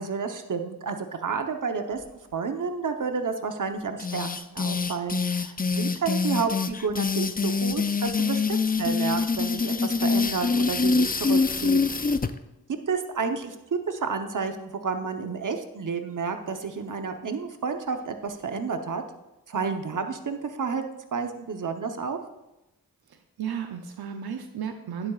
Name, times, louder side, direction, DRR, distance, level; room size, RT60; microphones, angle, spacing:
voice 1, 0.0-11.8 12.9-19.0 19.5-20.8 21.1-22.2, right 5 dB, 55° right, 6 dB, 1.0 m, -30 dB
sound 1, 4.0-12.3, left 4 dB, 25° left, 0.5 m, -25 dB
voice 2, 23.1-25.1, right 8 dB, 85° right, 6 dB, 0.7 m, -34 dB
11.5 x 9.5 x 2.4 m, 0.97 s
cardioid pair, 55°, 37 cm